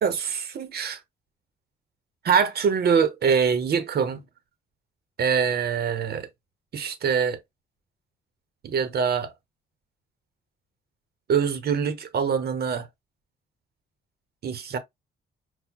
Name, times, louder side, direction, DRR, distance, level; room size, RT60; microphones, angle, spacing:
voice 1, 0.0-1.0 2.2-4.2 5.2-6.3 6.7-7.4 8.6-9.3 11.3-12.9 14.4-14.8, right 6 dB, 55° right, 0.8 m, -24 dB
5.6 x 2.1 x 2.3 m
cardioid pair, 90°, 20 cm